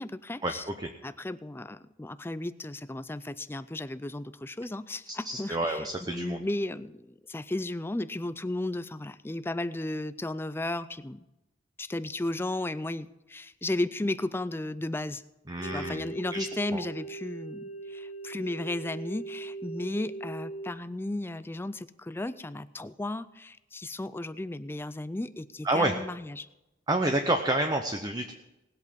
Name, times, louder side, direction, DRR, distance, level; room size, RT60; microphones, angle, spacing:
voice 1, 0.0-0.6 1.0-11.2 11.8-15.2 15.6-26.5, left 1 dB, 15° left, 14 dB, 0.4 m, -34 dB
voice 2, 5.1-6.4 15.5-16.4 16.7-16.8 25.6-26.0 26.9-28.3, right 1 dB, 20° right, 5 dB, 0.8 m, -29 dB
sound 1, 15.6-20.7, right 3 dB, 45° left, 1.1 m, -40 dB
19.0 x 8.2 x 5.2 m, 0.95 s
head